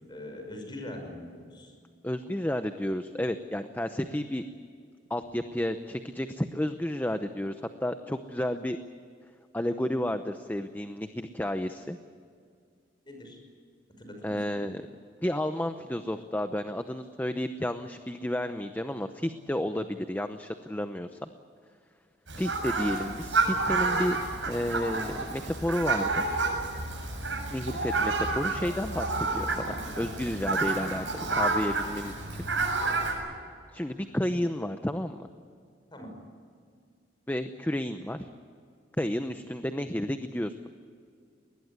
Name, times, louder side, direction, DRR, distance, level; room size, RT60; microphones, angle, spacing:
voice 1, 0.1-1.8 13.1-13.4 14.0-14.7 19.7-19.9 35.9-36.1, left 1 dB, 25° left, 4 dB, 5.8 m, -42 dB
voice 2, 2.0-4.4 5.1-8.8 9.5-12.0 14.2-14.8 15.2-21.3 22.4-24.2 24.5-26.2 27.5-32.5 33.7-35.3 37.3-38.3 39.0-40.5, left 1 dB, 10° left, 8 dB, 0.8 m, -31 dB
Fowl, 22.3-33.1, right 3 dB, 85° right, 7.6 m, -29 dB
21.5 x 20.0 x 9.7 m, 2.2 s
head